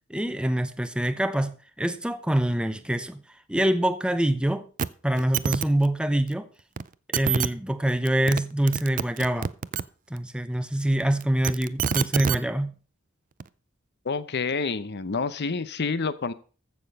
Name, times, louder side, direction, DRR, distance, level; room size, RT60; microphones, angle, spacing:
voice 1, 0.1-3.2 3.5-4.7 5.0-6.5 7.1-9.5 10.1-12.7, right 1 dB, 5° right, 0.8 m, -25 dB
sound 1, 4.8-4.9 5.2-5.7 6.8-6.9 7.1-7.5 8.1-8.4 8.7-9.8 11.2-12.4 13.4-13.5, right 7 dB, 40° right, 0.5 m, -26 dB
voice 2, 14.0-16.3, left 4 dB, 55° left, 0.8 m, -28 dB
14.5 x 6.7 x 5.4 m
head